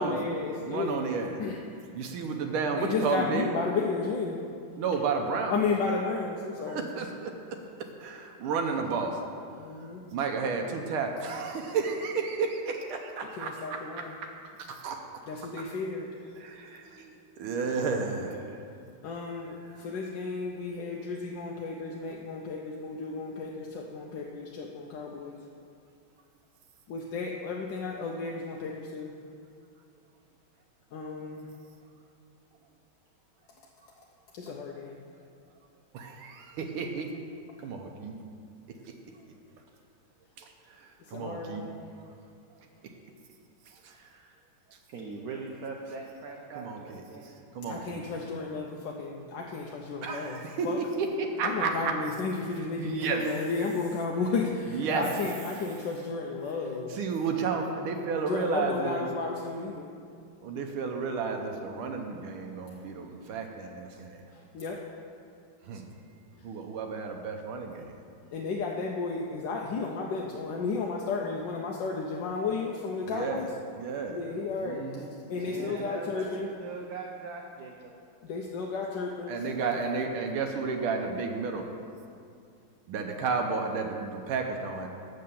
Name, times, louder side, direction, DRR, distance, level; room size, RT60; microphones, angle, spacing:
voice 1, 0.0-1.0 1.4-1.6 2.8-4.4 5.5-6.9 9.6-10.0 13.3-14.1 15.3-16.1 19.0-25.4 26.9-29.1 30.9-31.5 34.3-35.0 41.0-41.8 47.7-50.8 51.4-56.9 58.2-59.9 64.3-64.8 66.3-66.4 68.3-73.5 74.1-75.0 75.3-76.5 78.2-79.5, left 4 dB, 70° left, -1 dB, 1.2 m, -33 dB
voice 2, 0.7-1.4 1.9-3.5 4.8-5.6 6.7-7.6 8.0-9.3 10.1-14.3 14.6-15.0 16.4-18.6 35.9-37.1 37.6-38.2 38.8-38.9 40.4-41.6 43.7-44.1 46.5-48.0 50.0-51.9 52.8-53.2 54.7-55.1 56.9-59.1 60.4-64.3 65.7-65.9 66.4-67.9 73.1-73.5 73.8-74.2 74.6-75.1 75.5-75.9 79.3-81.7 82.9-84.9, right 5 dB, 90° right, 3 dB, 1.6 m, -32 dB
voice 3, 44.9-47.4 47.7-47.8 75.3-77.9, right 4 dB, 70° right, 0 dB, 0.9 m, -41 dB
6.7 x 6.6 x 6.9 m, 2.4 s
omnidirectional pair, 2.3 m